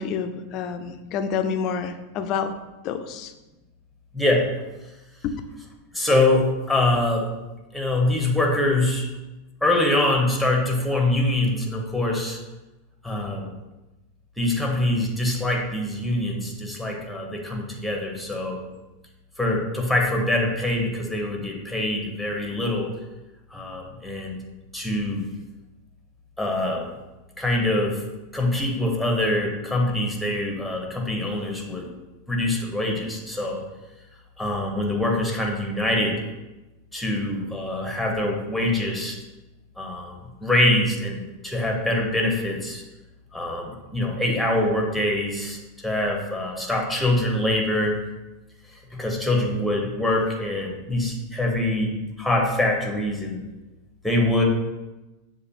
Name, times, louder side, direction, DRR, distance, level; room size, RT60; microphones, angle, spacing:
voice 1, 0.0-2.5 2.8-3.3 5.2-5.3, left 6 dB, 45° left, 8 dB, 0.4 m, -28 dB
voice 2, 4.1-4.5 5.9-7.3 7.7-9.1 9.6-12.4 13.0-13.5 14.4-18.6 19.4-22.9 23.5-24.4 24.7-25.3 26.4-26.9 27.4-28.0 28.3-31.9 32.3-33.6 34.4-36.2 36.9-39.2 39.8-42.8 43.3-48.0 48.7-51.9 52.2-53.4 54.0-54.4, left 1 dB, ahead, 0 dB, 0.9 m, -24 dB
6.5 x 2.5 x 2.8 m, 1.1 s
figure-of-eight pair, 90°, 0 cm